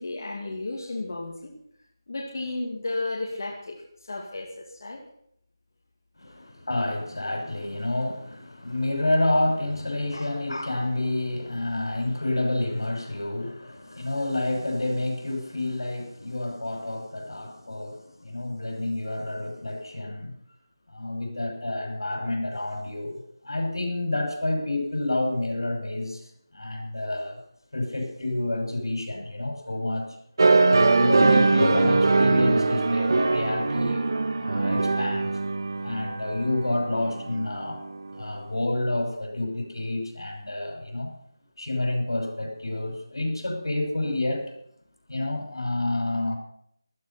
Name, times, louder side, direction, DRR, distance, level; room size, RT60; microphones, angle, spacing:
voice 1, 0.0-1.5 2.1-3.8 4.1-5.0 10.1-10.3, left 2 dB, 50° left, -2 dB, 2.5 m, -33 dB
voice 2, 6.2-20.3 20.9-27.4 27.7-30.2 30.8-34.1 34.4-35.3 35.8-37.8 38.1-41.1 41.6-44.5 45.1-46.4, left 2 dB, 80° left, 3 dB, 6.2 m, -29 dB
sound 1, 30.4-38.2, right 3 dB, 55° right, 1.4 m, -22 dB
15.0 x 13.0 x 5.9 m, 0.70 s
figure-of-eight pair, 170°, 2 cm